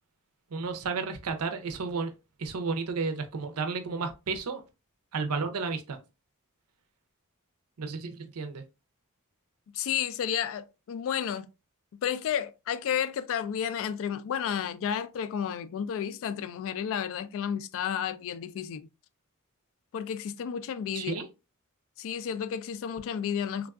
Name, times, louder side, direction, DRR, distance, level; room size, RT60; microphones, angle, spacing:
voice 1, 0.5-2.1 2.4-4.6 5.1-6.0 7.8-8.6 20.9-21.3, right 4 dB, 85° right, 0.6 m, -32 dB
voice 2, 9.7-11.5 12.0-18.9 19.9-21.3 22.0-23.7, left 8 dB, 65° left, 0.3 m, -32 dB
3.4 x 2.3 x 2.3 m
head